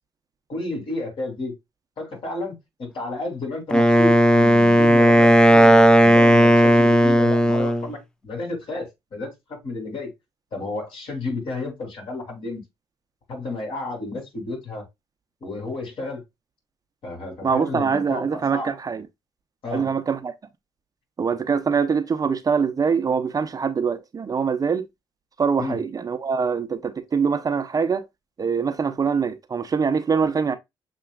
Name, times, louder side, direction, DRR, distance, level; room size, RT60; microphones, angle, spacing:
voice 1, 0.5-1.5 2.0-8.0 8.2-10.1 10.5-12.6 13.3-14.9 15.4-16.2 17.0-18.7 19.6-20.0 25.6-25.8, left 2 dB, 60° left, 3.4 m, -31 dB
Wind instrument woodwind instrument, 3.7-7.9, equal, 10° left, 0.5 m, -15 dB
voice 2, 17.4-19.0 19.7-20.3 21.2-24.9 25.4-28.0 28.4-30.5, right 6 dB, 35° right, 0.7 m, -23 dB
6.8 x 3.0 x 2.4 m
supercardioid pair, 70°, 10 cm